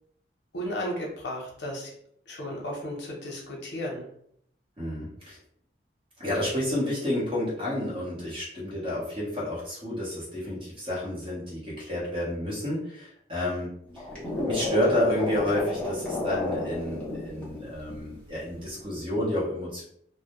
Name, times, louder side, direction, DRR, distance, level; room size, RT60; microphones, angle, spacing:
voice 1, 0.5-1.9 2.3-4.0, equal, 80° left, -2 dB, 0.6 m, -34 dB
voice 2, 4.8-5.4 6.2-14.0 14.5-19.8, left 1 dB, 30° right, -6 dB, 0.8 m, -30 dB
sound 1, 13.9-18.1 18.5-18.8, left 2 dB, 5° left, 0.6 m, -31 dB
2.1 x 2.0 x 2.8 m, 0.68 s
head